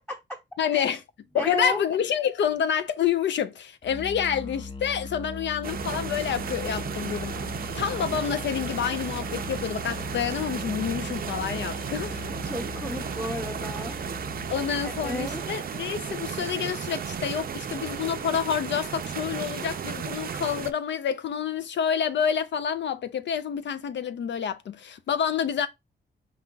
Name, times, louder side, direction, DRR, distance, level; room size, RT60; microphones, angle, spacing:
voice 1, 0.6-1.0 1.3-7.3 7.7-12.2 14.5-25.7, left 8 dB, 70° left, 0.4 m, -28 dB
voice 2, 1.3-1.8 12.4-14.0 14.8-15.5, left 1 dB, ahead, 0.9 m, -33 dB
Musical instrument, 3.8-15.6, left 3 dB, 30° left, 0.7 m, -39 dB
sound 1, 5.6-20.7, right 7 dB, 50° right, 0.4 m, -34 dB
5.3 x 2.2 x 3.7 m
wide cardioid pair, 100°, 19 cm